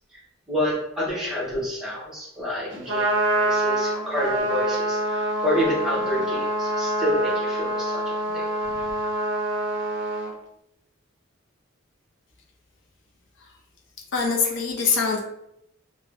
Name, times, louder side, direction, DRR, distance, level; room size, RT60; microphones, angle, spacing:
voice 1, 0.5-8.9, left 1 dB, ahead, -7 dB, 0.8 m, -29 dB
Trumpet, 2.7-10.3, right 1 dB, 55° right, 0.5 m, -26 dB
voice 2, 14.1-15.2, left 5 dB, 55° left, 0 dB, 0.4 m, -23 dB
2.6 x 2.1 x 3.3 m, 0.80 s
head